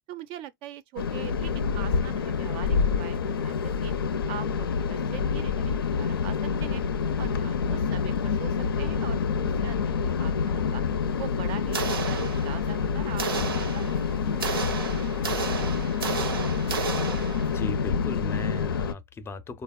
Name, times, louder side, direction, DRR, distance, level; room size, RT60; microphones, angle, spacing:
voice 1, 0.1-3.9 4.3-6.8 7.2-10.8 11.2-14.6, right 11 dB, 45° right, 0.4 m, -42 dB
sound 1, 1.0-18.9, left 6 dB, 90° left, 0.5 m, -27 dB
sound 2, 11.7-12.8 13.2-17.7, right 5 dB, 90° right, 0.6 m, -32 dB
voice 2, 17.5-19.6, left 3 dB, 20° left, 0.4 m, -37 dB
3.3 x 2.0 x 2.2 m
hypercardioid pair, 105°, 12 cm